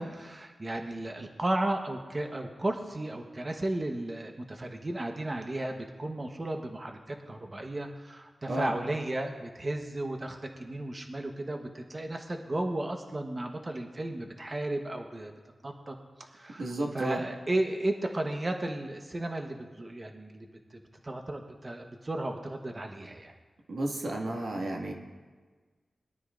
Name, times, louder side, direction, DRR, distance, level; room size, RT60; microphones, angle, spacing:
voice 1, 0.0-15.3 15.6-20.5 20.7-23.3, right 1 dB, 35° right, 3 dB, 1.1 m, -34 dB
voice 2, 16.6-17.2 23.7-24.9, right 1 dB, 75° right, 0 dB, 1.9 m, -32 dB
21.5 x 12.0 x 2.5 m, 1.4 s
cardioid pair, 50°, 0 cm